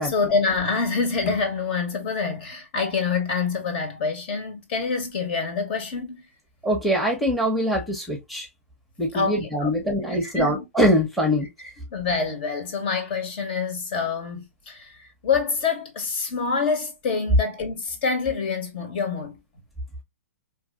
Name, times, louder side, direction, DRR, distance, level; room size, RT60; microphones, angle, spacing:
voice 1, 0.0-6.3 9.1-9.7 10.2-10.6 11.6-19.4, left 5 dB, 50° left, 1.7 m, -26 dB
voice 2, 6.6-8.5 9.0-11.5, equal, ahead, 1.1 m, -23 dB
4.5 x 3.1 x 2.6 m
figure-of-eight pair, 115°, 7 cm